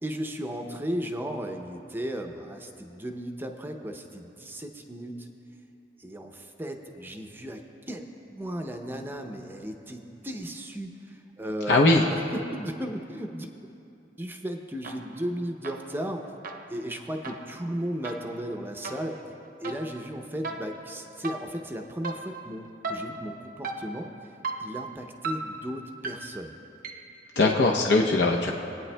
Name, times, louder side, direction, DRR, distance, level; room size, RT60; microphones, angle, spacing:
voice 1, 0.0-5.3 6.0-13.5 14.2-16.2 16.7-19.2 19.6-24.1 24.6-26.5 27.4-27.5, right 1 dB, 10° right, 4 dB, 0.5 m, -35 dB
voice 2, 11.7-12.0 27.4-28.5, left 2 dB, 65° left, -1 dB, 0.6 m, -20 dB
sound 1, 14.8-15.3 15.6-27.3, right 3 dB, 50° right, 0.7 m, -39 dB
23.5 x 9.2 x 2.2 m, 2.8 s
head